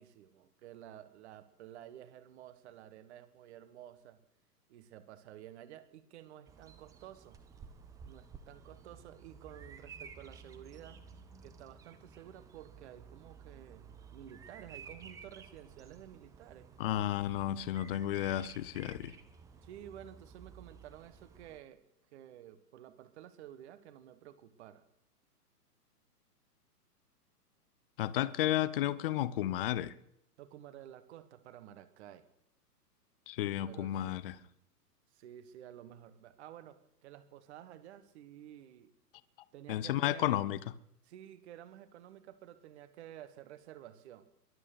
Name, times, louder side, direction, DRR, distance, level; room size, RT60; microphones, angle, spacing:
voice 1, 0.0-4.2 4.7-7.4 8.0-11.0 11.4-16.7 19.6-21.8 22.1-24.8 30.4-32.3 33.7-34.2 35.1-38.9 39.5-40.4 41.0-44.3, right 11 dB, 45° right, 1.6 m, -52 dB
Bird vocalization bird call bird song, 6.5-21.6, right 6 dB, 5° right, 0.6 m, -54 dB
voice 2, 16.8-19.1 28.0-29.9 33.3-34.3 39.7-40.6, left 13 dB, 35° left, 0.7 m, -32 dB
22.5 x 8.8 x 6.8 m
figure-of-eight pair, 120°, 48 cm